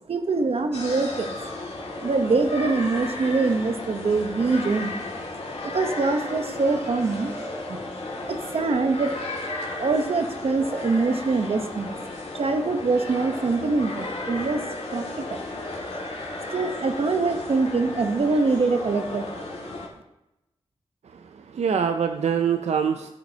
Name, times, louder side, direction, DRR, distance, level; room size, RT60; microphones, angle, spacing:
voice 1, 0.1-1.3 2.0-5.0 5.6-7.4 7.7-7.8 8.3-9.1 9.8-12.0 12.3-14.6 14.9-15.4 16.5-19.5, right 3 dB, 65° right, 6 dB, 1.0 m, -24 dB
sound 1, 0.7-19.9, left 2 dB, 85° left, 2.3 m, -34 dB
voice 2, 21.1-23.1, right 7 dB, 90° right, 6 dB, 0.5 m, -24 dB
13.5 x 8.5 x 2.9 m, 0.92 s
wide cardioid pair, 120°, 11 cm